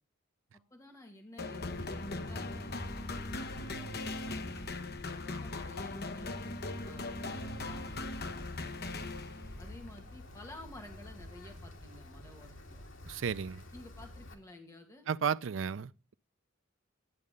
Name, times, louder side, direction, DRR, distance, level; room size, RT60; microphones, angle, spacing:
voice 1, 0.7-4.6 5.0-8.8 9.6-12.9 13.7-15.1, left 1 dB, 15° left, 2.0 m, -53 dB
sound 1, 1.4-9.7, left 2 dB, 50° left, 1.1 m, -40 dB
Wind, 1.6-14.3, left 1 dB, 80° left, 2.3 m, -47 dB
voice 2, 13.1-13.6 15.1-16.1, right 7 dB, 70° right, 0.5 m, -33 dB
11.0 x 8.6 x 5.2 m
head